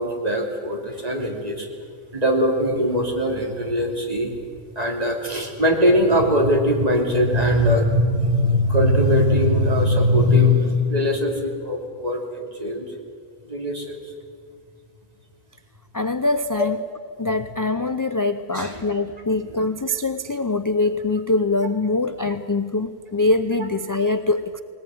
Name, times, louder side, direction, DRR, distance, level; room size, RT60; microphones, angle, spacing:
voice 1, 0.0-1.7 2.1-4.4 4.7-12.9 13.4-14.0 18.5-18.8 19.4-19.6, left 1 dB, 35° right, 1 dB, 3.1 m, -21 dB
voice 2, 15.9-16.8 17.2-24.6, left 2 dB, 25° left, 10 dB, 0.5 m, -23 dB
20.0 x 19.5 x 9.3 m, 2.2 s
omnidirectional pair, 1.1 m